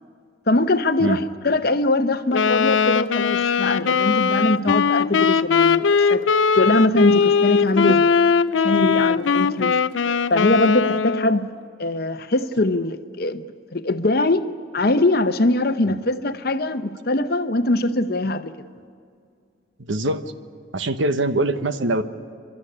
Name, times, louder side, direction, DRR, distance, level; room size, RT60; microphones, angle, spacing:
voice 1, 0.5-6.2 6.6-8.0 8.6-9.8 10.3-11.5 11.8-13.4 13.7-14.5 14.7-18.5, left 2 dB, 55° left, 0.8 m, -21 dB
Wind instrument woodwind instrument, 2.3-11.4, left 5 dB, 85° left, 0.5 m, -19 dB
voice 2, 19.9-20.3 20.7-22.0, right 2 dB, 85° right, 1.0 m, -23 dB
30.0 x 12.5 x 9.9 m
head